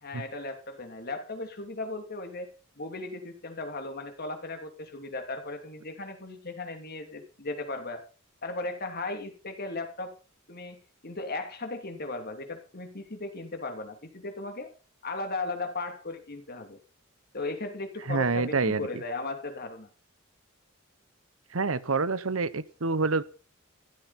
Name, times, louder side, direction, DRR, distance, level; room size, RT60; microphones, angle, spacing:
voice 1, 0.0-2.5 2.8-8.0 8.4-10.1 10.5-10.8 11.0-14.7 15.0-16.8 17.3-19.9, left 2 dB, 50° left, 6 dB, 2.9 m, -36 dB
voice 2, 18.1-18.9 21.5-23.2, right 4 dB, 75° right, 16 dB, 1.0 m, -27 dB
15.5 x 13.0 x 4.3 m, 0.35 s
head